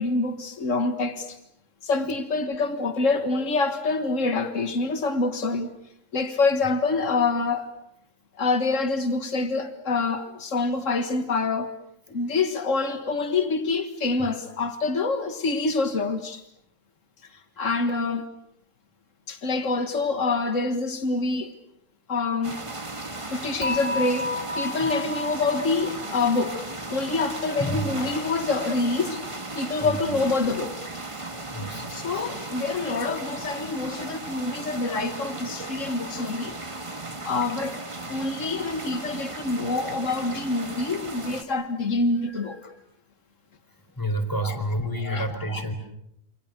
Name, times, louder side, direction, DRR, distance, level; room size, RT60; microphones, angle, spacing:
voice 1, 0.0-1.4 1.8-5.7 6.1-7.7 8.4-11.7 12.1-16.4 17.3-18.3 19.3-21.6 22.1-22.6 23.3-26.6 26.9-29.2 29.5-30.8 31.5-31.6 31.9-36.6 37.2-42.7 44.4-44.6 45.0-45.7, left 3 dB, 80° left, 9 dB, 2.1 m, -26 dB
sound 1, 22.4-41.4, right 2 dB, 25° right, 1.7 m, -36 dB
Dishes pots and pans / Chink clink, 23.6-26.8, left 2 dB, 75° right, 8.4 m, -32 dB
voice 2, 27.6-27.9 29.8-30.2 31.5-31.9 32.1-32.5 44.0-45.7, right 1 dB, 15° left, 6 dB, 3.9 m, -29 dB
29.0 x 28.0 x 6.7 m, 0.78 s
omnidirectional pair, 1.3 m